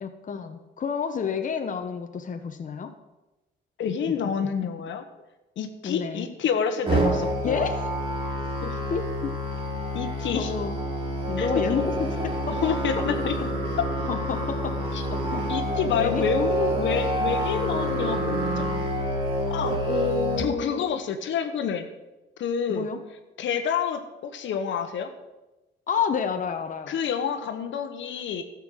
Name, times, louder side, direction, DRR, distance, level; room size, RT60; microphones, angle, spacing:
voice 1, 0.0-2.9 4.6-4.7 5.8-6.3 7.4-7.9 8.6-9.3 10.3-10.8 11.3-12.6 13.2-13.5 14.1-14.8 15.1-15.5 15.9-16.3 19.9-20.9 22.7-23.0 25.9-27.0, left 6 dB, 40° left, 6 dB, 1.0 m, -30 dB
voice 2, 3.8-5.0 5.6-7.7 8.6-8.8 9.9-10.5 11.4-11.9 12.6-13.4 14.9-15.0 15.5-18.7 19.5-19.8 20.4-21.9 22.4-22.9 23.4-25.1 26.9-28.4, left 7 dB, 70° left, 7 dB, 1.2 m, -28 dB
Musical instrument, 6.9-20.4, equal, 30° right, 4.2 m, -27 dB
12.0 x 7.3 x 6.4 m, 1.0 s
cardioid pair, 90°, 20 cm